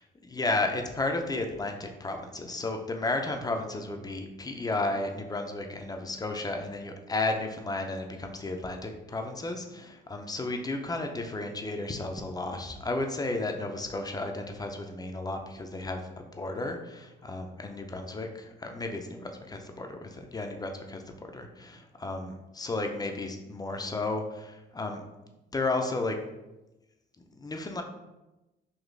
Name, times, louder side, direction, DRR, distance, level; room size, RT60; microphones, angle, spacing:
voice 1, 0.4-25.0 25.5-26.2 27.2-27.8, left 2 dB, 20° left, 4 dB, 0.5 m, -33 dB
4.0 x 2.8 x 3.3 m, 1.0 s
cardioid pair, 90°, 20 cm